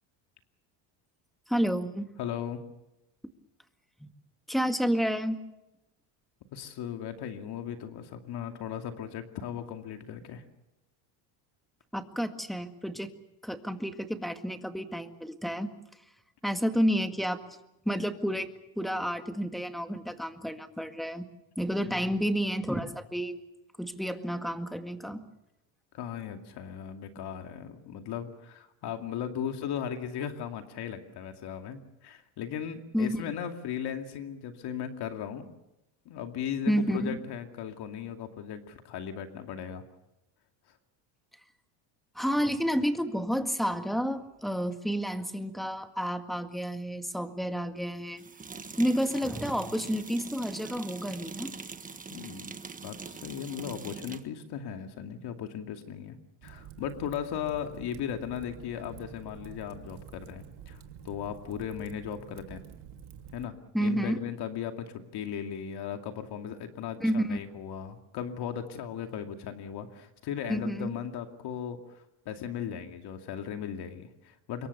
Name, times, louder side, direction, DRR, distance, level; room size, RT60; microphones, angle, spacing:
voice 1, 1.5-2.1 4.0-4.1 4.5-5.4 11.9-13.1 13.4-15.7 16.4-17.4 17.9-18.5 18.8-21.3 21.6-23.4 23.8-25.3 32.9-33.2 36.7-37.2 42.2-48.2 48.8-51.5 63.7-64.2 67.0-67.4 70.5-70.9, equal, ahead, 7 dB, 1.8 m, -30 dB
voice 2, 2.2-2.6 6.5-10.4 21.8-22.0 25.9-35.5 36.1-39.8 52.1-56.1 56.4-62.6 63.3-63.6 63.8-74.7, left 8 dB, 55° left, 5 dB, 2.5 m, -37 dB
sound 1, 44.7-44.8 48.2-54.3, right 4 dB, 15° right, 1.5 m, -43 dB
Fire, 56.4-63.5, right 8 dB, 55° right, 2.7 m, -48 dB
26.0 x 22.5 x 6.9 m, 0.91 s
cardioid pair, 120°, 47 cm